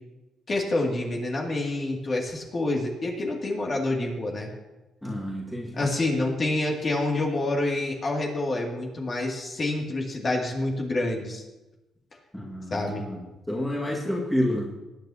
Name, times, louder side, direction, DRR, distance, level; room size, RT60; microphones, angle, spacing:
voice 1, 0.5-4.5 5.7-11.4 12.7-13.0, left 2 dB, 40° left, -1 dB, 2.6 m, -27 dB
voice 2, 5.0-5.8 12.3-13.2 13.5-14.7, left 1 dB, 5° left, -4 dB, 2.1 m, -29 dB
20.0 x 9.3 x 2.9 m, 1.0 s
cardioid pair, 90°, 0 cm